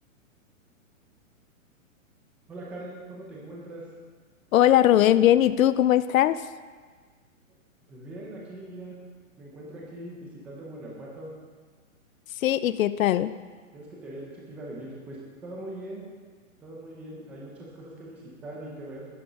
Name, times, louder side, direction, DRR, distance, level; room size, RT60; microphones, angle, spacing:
voice 1, 2.5-3.8 7.9-9.0 9.4-11.3 13.7-16.1 16.6-19.1, right 1 dB, 5° right, -4 dB, 0.6 m, -41 dB
voice 2, 4.5-6.4 12.4-13.3, left 12 dB, 75° left, 15 dB, 0.6 m, -20 dB
10.5 x 10.0 x 5.3 m, 1.5 s
hypercardioid pair, 165°, 41 cm